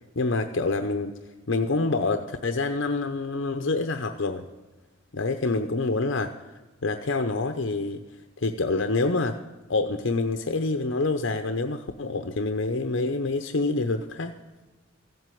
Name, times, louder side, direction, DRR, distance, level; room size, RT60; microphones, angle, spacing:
voice 1, 0.2-1.2 1.5-4.5 5.1-6.3 6.8-8.0 8.4-9.4 9.7-14.4, left 3 dB, 65° left, 7 dB, 0.8 m, -26 dB
15.5 x 8.1 x 9.1 m, 1.2 s
head